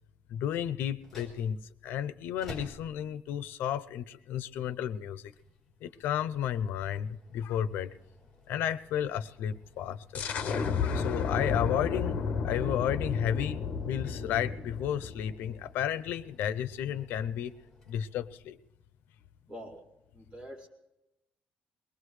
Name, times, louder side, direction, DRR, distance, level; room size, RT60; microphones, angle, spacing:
voice 1, 0.3-1.6 1.8-5.3 5.8-7.9 8.5-10.2 10.8-12.2 12.4-17.5 17.9-18.6, left 10 dB, 75° left, 14 dB, 0.6 m, -32 dB
sound 1, 0.9-18.7, left 2 dB, 5° left, 3.8 m, -55 dB
sound 2, 10.1-15.6, left 5 dB, 45° left, 1.0 m, -32 dB
voice 2, 19.5-19.8 20.1-20.7, equal, 25° right, -2 dB, 2.7 m, -45 dB
22.5 x 20.0 x 3.2 m, 0.92 s
cardioid pair, 180°, 3 cm